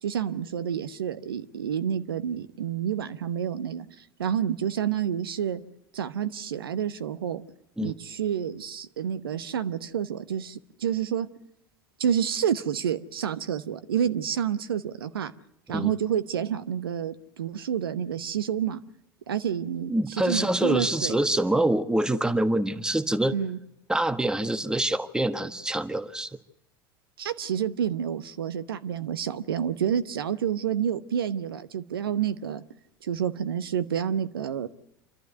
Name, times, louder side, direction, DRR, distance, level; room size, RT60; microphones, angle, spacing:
voice 1, 0.0-5.6 5.9-7.4 7.8-11.3 12.0-15.3 15.7-18.8 19.3-21.2 23.3-23.6 27.2-32.6 33.0-34.7, right 8 dB, 80° right, 11 dB, 0.9 m, -29 dB
voice 2, 19.9-23.3 23.9-26.3, right 1 dB, 5° right, 11 dB, 1.4 m, -25 dB
28.0 x 12.5 x 8.1 m, 0.85 s
figure-of-eight pair, 75°, 12 cm